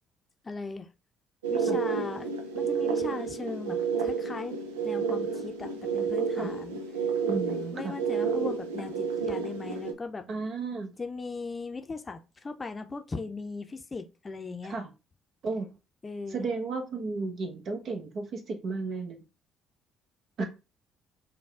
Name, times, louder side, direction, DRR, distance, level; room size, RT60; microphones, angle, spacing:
voice 1, 0.4-0.9 1.5-2.3 2.5-4.6 4.8-6.8 7.7-10.3 11.0-14.8 16.0-16.5, left 4 dB, 30° left, 0.6 m, -38 dB
sound 1, 1.4-9.9, right 5 dB, 85° right, 0.5 m, -30 dB
voice 2, 7.3-8.0 10.3-10.9 14.7-14.9 15.4-15.7 16.3-19.2 20.4-20.5, right 4 dB, 55° right, 1.1 m, -33 dB
5.3 x 2.3 x 3.4 m
hypercardioid pair, 50°, 0 cm